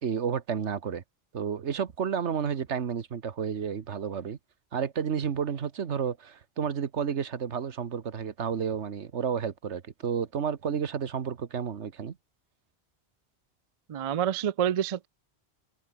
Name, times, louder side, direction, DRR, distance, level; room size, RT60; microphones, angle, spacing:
voice 1, 0.0-1.0 1.3-4.4 4.7-12.2, right 7 dB, 85° right, 1.5 m, -31 dB
voice 2, 13.9-15.1, right 10 dB, 50° right, 0.4 m, -27 dB
omnidirectional pair, 1.1 m